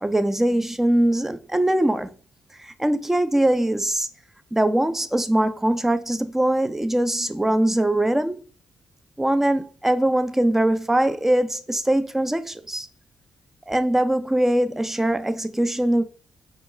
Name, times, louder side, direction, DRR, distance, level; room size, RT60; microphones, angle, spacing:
voice 1, 0.0-2.1 2.6-4.1 4.5-8.4 9.2-12.9 13.7-16.0, right 1 dB, 10° right, 0.5 m, -22 dB
5.0 x 2.3 x 3.3 m
supercardioid pair, 55°, 3 cm